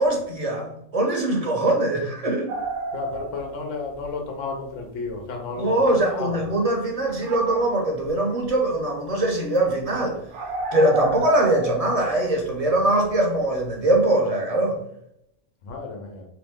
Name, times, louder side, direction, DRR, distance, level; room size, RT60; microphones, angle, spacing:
voice 1, 0.0-2.5 5.6-10.2 10.7-14.8, right 1 dB, 35° right, 0 dB, 0.7 m, -22 dB
sound 1, 2.5-4.2 4.5-4.6 5.1-5.2 5.9-6.0 7.1-8.1 8.4-8.7 9.1-9.2 9.6-9.7 9.8-9.9 10.3-13.4 13.7-14.0, right 2 dB, 70° right, 0.9 m, -32 dB
voice 2, 2.9-6.4 15.6-16.3, left 4 dB, 85° left, 2 dB, 1.2 m, -32 dB
3.1 x 3.0 x 3.5 m, 0.76 s
omnidirectional pair, 1.3 m